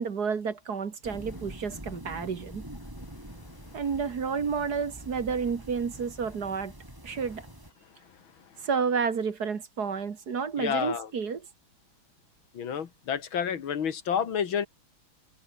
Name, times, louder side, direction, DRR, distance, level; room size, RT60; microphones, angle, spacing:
voice 1, 0.0-2.6 3.7-6.7 7.0-7.4 8.6-11.5, right 6 dB, 50° right, 2.2 m, -30 dB
sound 1, 1.0-7.7, right 1 dB, 10° right, 4.5 m, -45 dB
voice 2, 10.6-11.1 12.5-14.7, left 7 dB, 80° left, 2.5 m, -29 dB
omnidirectional pair, 2.2 m